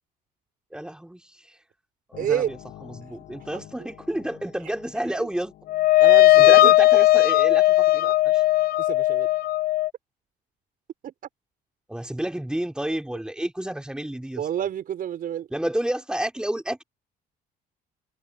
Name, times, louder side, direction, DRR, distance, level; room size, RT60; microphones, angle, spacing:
voice 1, 0.7-1.5 2.1-2.6 2.8-5.5 6.4-8.4 11.9-14.4 15.5-16.8, right 1 dB, 5° right, 4.2 m, -30 dB
voice 2, 2.2-2.5 3.5-3.9 5.1-5.3 6.0-6.7 8.8-9.3 11.0-11.1 14.4-15.5, right 10 dB, 55° right, 5.8 m, -29 dB
sound 1, 5.7-9.9, left 16 dB, 65° left, 0.8 m, -17 dB
cardioid pair, 110°, 17 cm